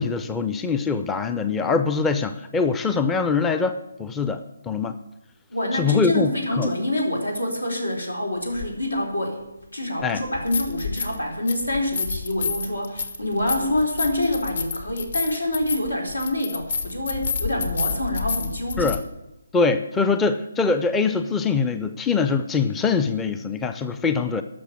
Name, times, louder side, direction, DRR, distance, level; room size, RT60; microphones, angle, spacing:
voice 1, 0.0-4.4 4.7-4.9 5.7-6.3 6.6-6.7 10.0-10.2 18.8-19.0 19.5-24.4, left 5 dB, 10° left, 10 dB, 0.5 m, -23 dB
voice 2, 5.5-9.4 9.7-18.9, left 1 dB, 85° left, 1 dB, 4.3 m, -26 dB
sound 1, 8.6-8.7 10.2-11.2 11.5-19.0, left 5 dB, 55° left, 1.6 m, -29 dB
12.0 x 6.7 x 9.3 m, 0.96 s
figure-of-eight pair, 145°, 0 cm